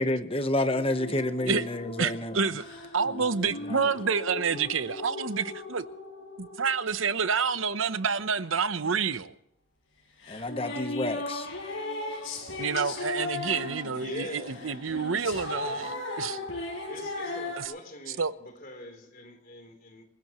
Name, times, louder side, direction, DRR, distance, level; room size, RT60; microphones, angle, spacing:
voice 1, 0.0-2.4 3.1-3.2 3.7-3.8 10.3-11.5, left 1 dB, 30° left, 1.1 m, -29 dB
sound 1, 0.7-7.7 10.2-17.6, left 2 dB, 85° left, 6.3 m, -37 dB
voice 2, 2.0-2.7 2.9-5.9 6.4-9.3 12.6-16.4 17.6-17.7 18.2-18.3, right 5 dB, 85° right, 0.9 m, -28 dB
voice 3, 13.9-15.0 15.4-15.9 16.9-20.0, left 2 dB, 45° left, 3.6 m, -43 dB
27.0 x 16.5 x 3.1 m
head